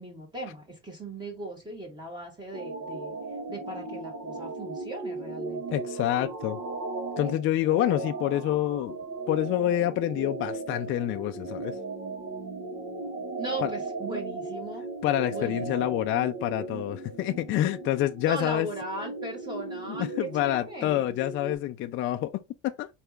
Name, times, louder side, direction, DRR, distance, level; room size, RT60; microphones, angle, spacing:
voice 1, 0.0-3.1 3.5-5.8 13.4-14.8 15.3-16.0 18.3-21.1, right 2 dB, 15° right, 1.5 m, -38 dB
sound 1, 2.5-21.6, right 3 dB, 55° right, 1.1 m, -37 dB
voice 2, 5.7-6.6 7.2-9.0 9.3-11.8 13.6-13.7 15.0-18.7 19.9-22.9, left 13 dB, 40° left, 0.4 m, -27 dB
4.1 x 3.4 x 3.6 m
cardioid pair, 145°, 30 cm